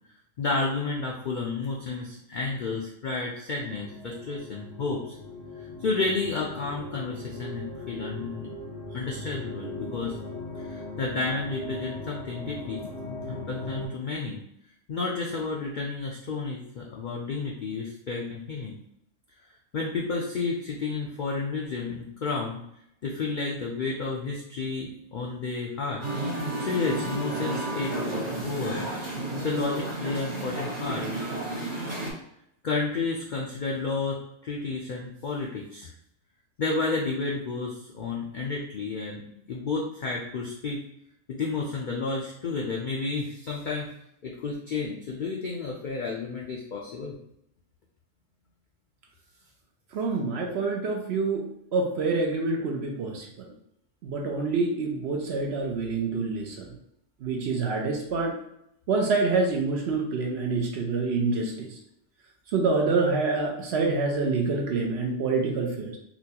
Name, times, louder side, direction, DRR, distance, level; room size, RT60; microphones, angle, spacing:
voice 1, 0.4-5.2 5.8-8.5 8.9-10.2 10.6-14.4 14.9-18.8 19.7-22.6 23.0-26.0 26.6-28.0 28.3-28.9 29.3-31.0 32.6-35.9 36.6-40.8 41.3-43.9 44.2-47.1, left 4 dB, 85° left, -2 dB, 0.4 m, -31 dB
sound 1, 3.6-13.9, left 1 dB, 65° left, 1.4 m, -39 dB
Musical instrument, 26.0-32.1, right 1 dB, 30° right, 1.2 m, -32 dB
voice 2, 49.9-51.4 51.7-53.5 54.0-56.7 57.2-58.3 58.9-61.7 62.5-66.0, right 3 dB, 60° right, 1 dB, 0.8 m, -26 dB
4.0 x 2.3 x 2.8 m, 0.75 s
omnidirectional pair, 1.4 m